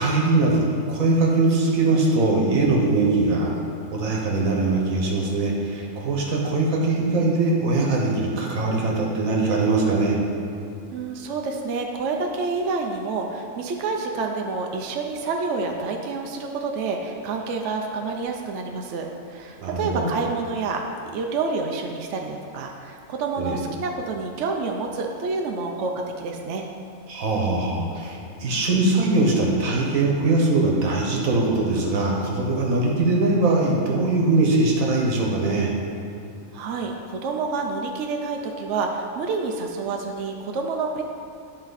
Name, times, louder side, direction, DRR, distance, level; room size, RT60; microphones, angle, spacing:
voice 1, 0.0-3.6 3.9-10.2 19.6-20.1 23.4-23.6 27.1-35.7, right 2 dB, 85° right, -1 dB, 1.5 m, -21 dB
voice 2, 10.9-20.8 21.1-26.7 36.5-41.0, right 4 dB, 65° right, 2 dB, 0.9 m, -28 dB
10.5 x 4.3 x 4.0 m, 2.5 s
omnidirectional pair, 1.4 m